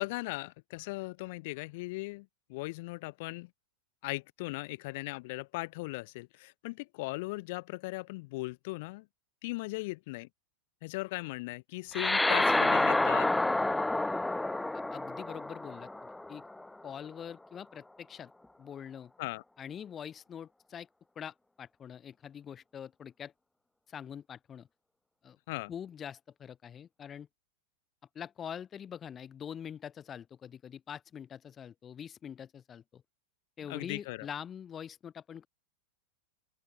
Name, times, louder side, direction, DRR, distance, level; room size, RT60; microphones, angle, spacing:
voice 1, 0.0-3.5 4.0-9.1 9.4-10.3 10.8-13.3 19.2-19.4 25.5-25.7 33.7-34.3, left 23 dB, 50° left, 5.7 m, -38 dB
sound 1, 11.9-16.7, left 2 dB, 5° left, 1.6 m, -29 dB
voice 2, 14.9-16.4 16.8-18.3 18.6-19.1 19.6-20.9 21.2-23.3 23.9-24.7 25.2-25.4 25.7-27.3 28.2-33.0 33.6-35.5, left 8 dB, 25° left, 5.3 m, -44 dB
open air
figure-of-eight pair, 90°, 0 cm